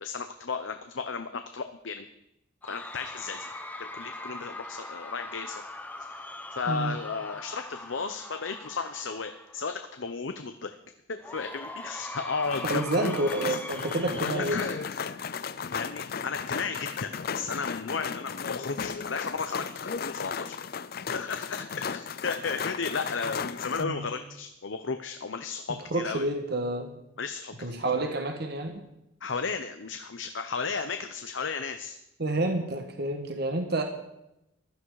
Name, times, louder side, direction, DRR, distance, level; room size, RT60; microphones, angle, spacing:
voice 1, 0.0-2.1 2.7-3.5 3.8-5.6 6.1-10.8 11.1-13.2 14.2-14.8 15.7-20.5 21.1-26.2 27.2-27.8 29.2-31.9, left 5 dB, 75° left, 8 dB, 0.8 m, -34 dB
Cheering / Crowd, 2.6-9.9 11.2-15.9, left 2 dB, 10° left, 1.1 m, -42 dB
sound 1, 12.4-23.8, left 6 dB, 50° left, 0.5 m, -35 dB
voice 2, 12.6-14.6 23.8-24.1 25.9-27.0 27.6-28.8 32.2-33.8, right 2 dB, 55° right, 5 dB, 1.5 m, -29 dB
15.5 x 12.0 x 4.8 m, 0.88 s
head